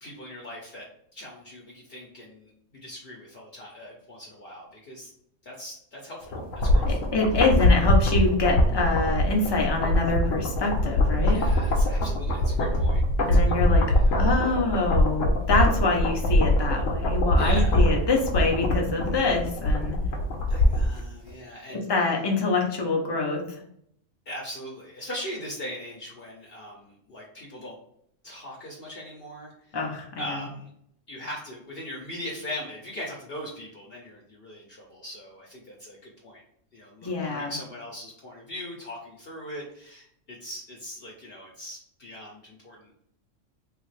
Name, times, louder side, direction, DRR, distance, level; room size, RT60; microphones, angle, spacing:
voice 1, 0.0-0.8 1.1-5.1 5.4-7.0 11.3-13.0 13.3-14.2 17.4-17.9 20.5-21.8 24.3-27.7 28.2-29.5 30.2-30.7 31.1-36.4 36.7-42.9, left 1 dB, 55° left, -2 dB, 0.9 m, -40 dB
sound 1, 6.3-21.0 21.3-21.4, left 1 dB, 80° left, 1.0 m, -23 dB
voice 2, 6.8-11.4 13.3-13.9 14.2-20.0 21.7-23.4 29.7-30.4 37.0-37.5, left 3 dB, 35° left, 1 dB, 0.4 m, -25 dB
3.2 x 2.4 x 3.2 m, 0.70 s
omnidirectional pair, 1.3 m